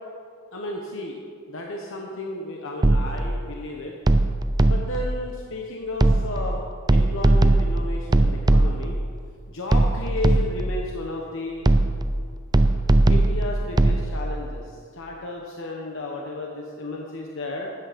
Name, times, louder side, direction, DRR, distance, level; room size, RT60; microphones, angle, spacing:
voice 1, 0.5-1.1 1.5-4.0 4.7-6.6 6.9-9.0 9.5-11.7 13.1-17.7, left 2 dB, 60° left, 0 dB, 1.0 m, -33 dB
sound 1, 2.8-3.3 4.1-5.1 6.0-6.5 6.9-9.0 9.7-10.8 11.6-12.2 12.5-14.0, right 2 dB, 20° right, 0.4 m, -19 dB
13.0 x 8.7 x 5.1 m, 2.3 s
head